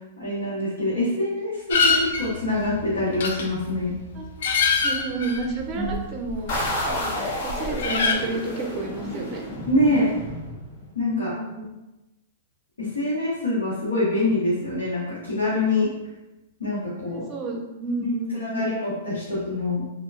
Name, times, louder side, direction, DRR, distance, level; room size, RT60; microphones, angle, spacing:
voice 1, 0.2-3.9 5.7-6.0 9.6-10.1 10.9-11.4 12.8-15.9 16.6-17.2 18.3-19.8, left 1 dB, 85° left, -10 dB, 0.8 m, -25 dB
sound 1, 1.7-7.1 7.3-8.1, left 4 dB, 70° left, 0.4 m, -25 dB
voice 2, 4.8-6.5 6.9-9.4 11.0-11.7 17.1-18.7, right 2 dB, 35° right, 2 dB, 0.5 m, -30 dB
sound 2, 6.5-11.0, left 1 dB, 50° left, 1.0 m, -31 dB
3.0 x 2.2 x 2.4 m, 1.0 s
hypercardioid pair, 115°, 0 cm